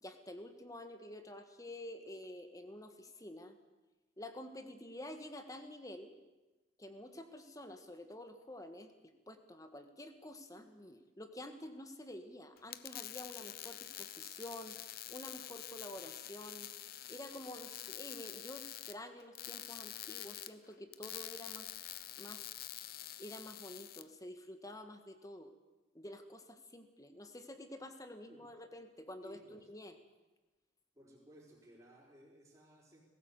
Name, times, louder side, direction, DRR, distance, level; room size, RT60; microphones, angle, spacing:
voice 1, 0.0-3.6 4.2-6.1 6.8-8.9 9.3-14.8 15.1-16.7 17.1-21.7 22.2-22.4 22.9-25.5 25.9-29.9, left 1 dB, 20° left, 8 dB, 1.5 m, -49 dB
sound 1, 12.6-24.0, left 12 dB, 50° left, 0.8 m, -47 dB
voice 2, 29.2-29.7 30.9-33.0, equal, 20° right, -8 dB, 4.5 m, -59 dB
19.5 x 17.0 x 8.2 m, 1.1 s
head